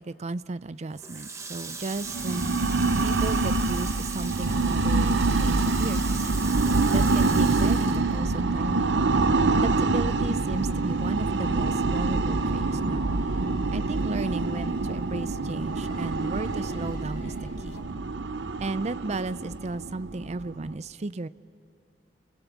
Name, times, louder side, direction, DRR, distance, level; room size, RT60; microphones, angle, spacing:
voice 1, 0.0-2.5 3.0-6.3 6.9-9.0 9.5-13.2 13.7-17.8 18.6-21.3, right 3 dB, 40° right, 15 dB, 0.5 m, -34 dB
Water tap faucet, 0.9-8.8 9.1-10.4, right 4 dB, 15° right, 1.1 m, -39 dB
sound 1, 2.0-20.7, right 3 dB, 80° right, 0.7 m, -26 dB
sound 2, 4.4-17.8, left 1 dB, 75° left, 2.6 m, -44 dB
29.5 x 20.5 x 7.3 m, 2.3 s
head